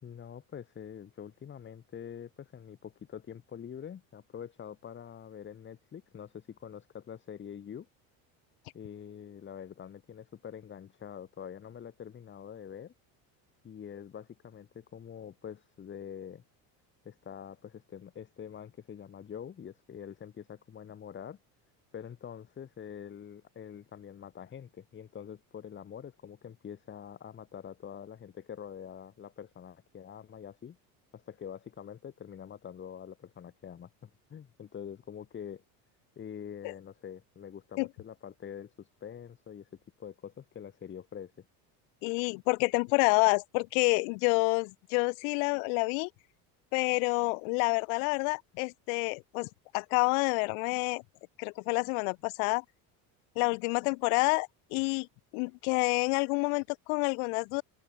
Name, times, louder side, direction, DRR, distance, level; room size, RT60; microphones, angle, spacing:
voice 1, 0.0-7.9 8.7-12.9 13.6-16.4 17.1-21.4 21.9-30.8 31.1-35.6 36.2-39.7 40.0-41.4, left 8 dB, 25° left, 1.8 m, -45 dB
voice 2, 42.0-46.1 46.7-51.0 51.4-52.6 53.3-55.1 55.3-57.6, left 38 dB, 80° left, 1.3 m, -28 dB
open air
cardioid pair, 135°, 42 cm